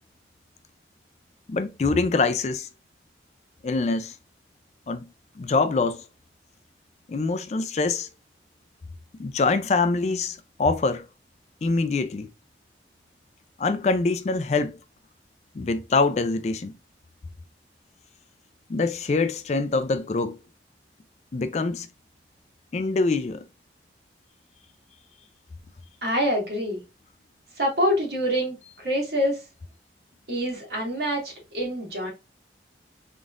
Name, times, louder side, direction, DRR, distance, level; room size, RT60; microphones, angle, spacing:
voice 1, 1.5-2.7 3.6-4.2 4.9-5.0 5.4-6.0 7.1-8.1 9.2-11.1 11.6-12.3 13.6-14.8 15.5-16.7 18.7-20.4 21.3-21.9 22.7-23.5, left 3 dB, 40° left, 0.3 m, -24 dB
voice 2, 26.0-26.8 27.6-29.4 30.3-32.1, equal, 60° right, 2.0 m, -26 dB
3.6 x 3.6 x 2.4 m
head